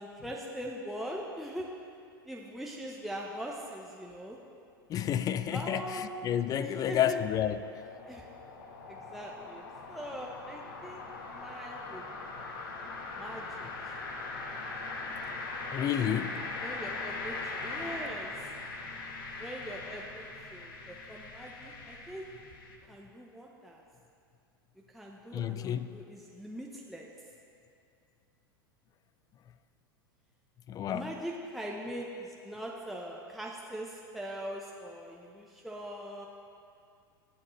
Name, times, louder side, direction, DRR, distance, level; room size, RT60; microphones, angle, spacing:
voice 1, 0.0-1.7 2.2-4.4 5.5-6.2 6.6-7.2 8.1-8.2 8.9-12.1 12.5-12.6 13.2-14.0 16.3-18.3 19.4-22.2 22.9-23.8 24.9-27.1 30.8-36.3, equal, ahead, -2 dB, 0.9 m, -42 dB
voice 2, 4.9-7.6 15.7-16.4 25.3-26.0 30.7-31.2, left 10 dB, 30° left, 13 dB, 0.4 m, -30 dB
sound 1, 5.8-22.8, left 3 dB, 65° left, 1.3 m, -41 dB
19.0 x 7.5 x 3.2 m, 2.4 s
hypercardioid pair, 95°, 12 cm